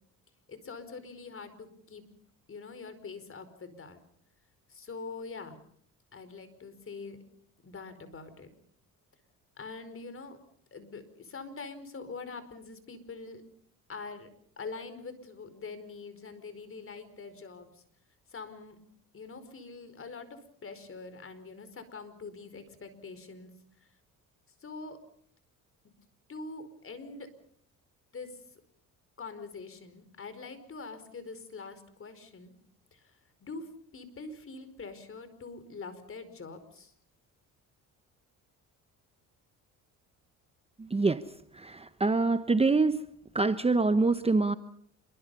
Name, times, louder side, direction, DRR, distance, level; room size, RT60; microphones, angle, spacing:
voice 1, 0.5-2.0 2.5-4.0 4.7-5.6 6.1-7.2 7.6-8.5 9.6-10.4 10.7-13.4 13.9-14.3 14.6-17.8 18.3-18.8 19.1-23.5 24.6-25.0 26.3-27.3 28.1-28.6 29.2-32.5 32.9-36.9, left 4 dB, 40° left, 11 dB, 4.8 m, -44 dB
voice 2, 40.8-41.2 41.5-43.0 43.3-44.5, right 3 dB, 15° right, 11 dB, 1.0 m, -25 dB
27.5 x 23.5 x 5.6 m, 0.63 s
cardioid pair, 95°, 35 cm